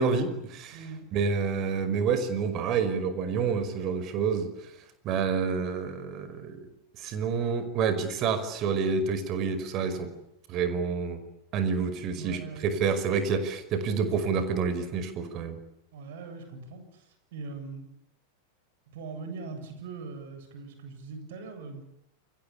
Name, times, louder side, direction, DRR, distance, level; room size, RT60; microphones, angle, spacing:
voice 1, 0.0-0.8 1.1-4.5 5.0-6.7 7.0-10.1 10.5-11.2 11.5-15.6, right 5 dB, 35° right, 11 dB, 5.4 m, -28 dB
voice 2, 0.7-1.1 12.1-12.7 15.9-17.8 18.9-21.8, right 4 dB, 55° right, 8 dB, 7.9 m, -41 dB
29.5 x 22.5 x 8.7 m, 0.82 s
figure-of-eight pair, 90°, 0 cm